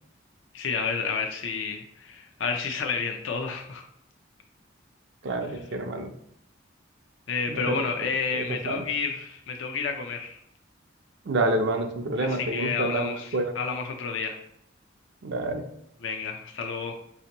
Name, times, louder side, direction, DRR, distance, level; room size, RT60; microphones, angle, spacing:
voice 1, 0.5-3.8 7.3-10.4 12.2-14.4 16.0-16.9, left 5 dB, 80° left, 4 dB, 0.5 m, -30 dB
voice 2, 5.2-6.1 7.5-7.8 8.3-8.8 11.2-13.5 15.2-15.7, right 2 dB, 65° right, 5 dB, 0.5 m, -28 dB
5.0 x 2.8 x 2.8 m, 0.73 s
head